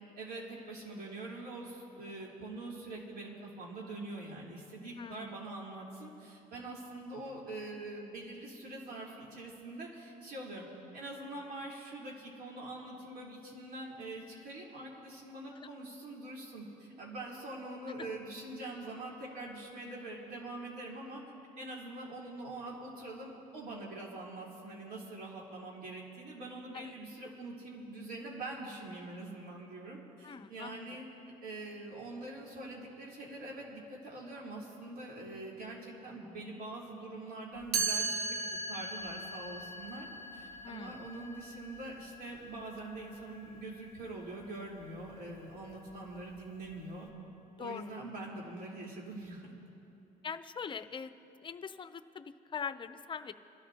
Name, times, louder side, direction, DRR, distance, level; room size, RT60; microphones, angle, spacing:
voice 1, 0.2-10.7 10.9-21.2 21.6-31.0 31.4-40.1 40.3-47.1 47.6-49.5, right 2 dB, 65° right, -4 dB, 4.0 m, -44 dB
voice 2, 5.0-5.3 15.6-15.7 26.7-26.9 30.2-30.9 40.6-40.9 47.6-47.8 50.2-51.1 51.4-53.3, left 6 dB, 30° left, 11 dB, 0.6 m, -42 dB
Chime, 37.7-43.6, right 4 dB, 90° right, 1.9 m, -38 dB
27.5 x 13.0 x 2.9 m, 2.8 s
cardioid pair, 110°, 17 cm